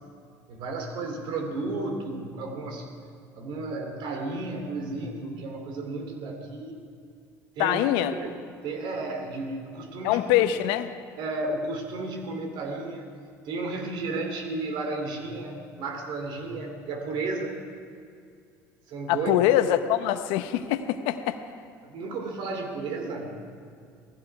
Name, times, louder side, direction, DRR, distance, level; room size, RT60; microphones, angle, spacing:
voice 1, 0.5-2.9 3.4-6.8 7.6-7.8 8.1-10.3 11.2-13.1 13.4-17.6 18.9-19.5 21.8-23.4, right 3 dB, 65° right, 3 dB, 2.8 m, -33 dB
voice 2, 7.6-8.1 10.0-10.9 19.1-21.4, left 12 dB, 75° left, 10 dB, 0.9 m, -24 dB
19.0 x 15.5 x 4.7 m, 2.3 s
supercardioid pair, 75°, 9 cm